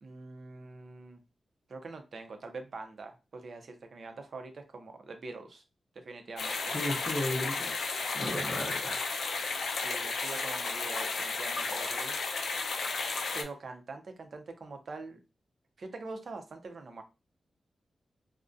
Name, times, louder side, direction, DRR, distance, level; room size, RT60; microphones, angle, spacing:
voice 1, 0.0-1.2 1.7-5.6 6.0-7.0 9.7-12.5 13.3-15.2 15.8-17.0, right 3 dB, 50° right, 6 dB, 0.4 m, -44 dB
sound 1, 6.4-13.4, left 4 dB, 90° left, 0.4 m, -33 dB
voice 2, 6.7-7.8 8.1-9.0, left 1 dB, 25° left, -3 dB, 0.6 m, -34 dB
2.3 x 2.1 x 2.5 m, 0.29 s
wide cardioid pair, 175°, 0 cm